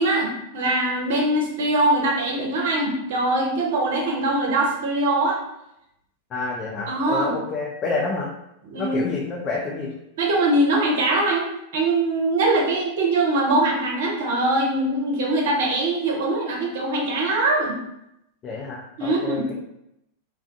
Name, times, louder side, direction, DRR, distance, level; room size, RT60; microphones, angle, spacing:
voice 1, 0.0-5.4 6.9-7.3 8.7-9.0 10.2-11.4 11.7-17.8 19.0-19.5, right 2 dB, 55° right, -1 dB, 0.6 m, -22 dB
voice 2, 6.3-8.3 8.8-9.9 18.4-19.5, left 3 dB, 30° left, -2 dB, 0.4 m, -28 dB
2.3 x 2.2 x 2.4 m, 0.82 s
figure-of-eight pair, 90°, 0 cm